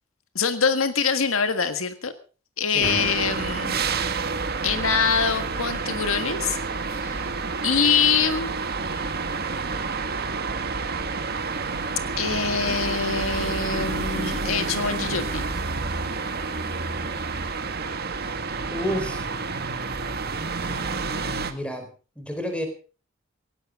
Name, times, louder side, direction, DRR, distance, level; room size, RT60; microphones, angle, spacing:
voice 1, 0.3-2.1 2.6-3.8 4.6-6.6 6.9-7.3 7.6-8.5 12.2-15.4, left 5 dB, 75° left, 9 dB, 1.6 m, -24 dB
voice 2, 2.7-3.1 18.7-19.4 21.2-21.9 22.2-22.7, equal, 5° left, 6 dB, 4.4 m, -30 dB
sound 1, 2.8-21.5, right 4 dB, 50° right, 1.7 m, -29 dB
19.0 x 16.5 x 3.8 m, 0.37 s
head